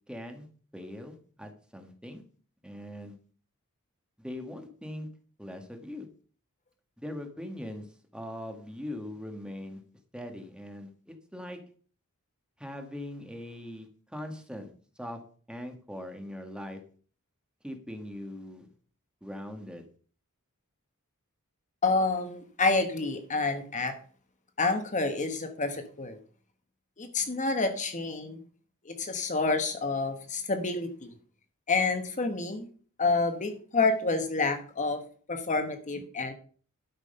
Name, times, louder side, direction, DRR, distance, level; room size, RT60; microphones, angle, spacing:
voice 1, 0.1-0.5 0.7-2.2 2.6-3.2 4.2-5.1 5.4-6.0 7.0-7.9 8.1-9.8 10.1-11.6 12.6-15.2 15.5-16.8 17.6-18.7 19.2-19.8, left 1 dB, 5° right, 5 dB, 1.5 m, -41 dB
voice 2, 21.8-23.9 24.6-26.2 27.0-28.4 28.8-31.1 31.7-32.7 33.0-35.0 35.3-36.3, left 3 dB, 35° left, 7 dB, 1.3 m, -28 dB
12.0 x 6.2 x 5.4 m, 0.43 s
head